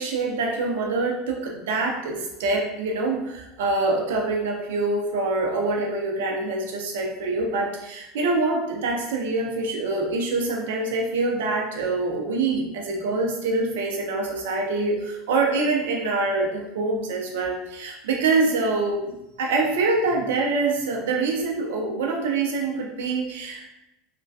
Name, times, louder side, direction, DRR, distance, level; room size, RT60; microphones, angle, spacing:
voice 1, 0.0-23.7, right 3 dB, 65° right, 0 dB, 0.6 m, -25 dB
3.3 x 2.2 x 2.6 m, 0.94 s
figure-of-eight pair, 80°, 0 cm